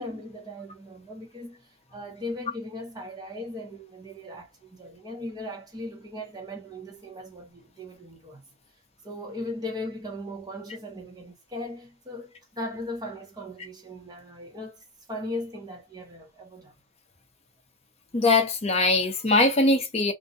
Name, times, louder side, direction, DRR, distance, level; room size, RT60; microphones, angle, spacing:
voice 1, 0.0-8.4 9.0-14.8 15.1-16.7, left 1 dB, 20° right, 0.8 m, -38 dB
voice 2, 18.1-20.1, left 2 dB, 30° left, 0.6 m, -21 dB
2.6 x 2.2 x 2.5 m
head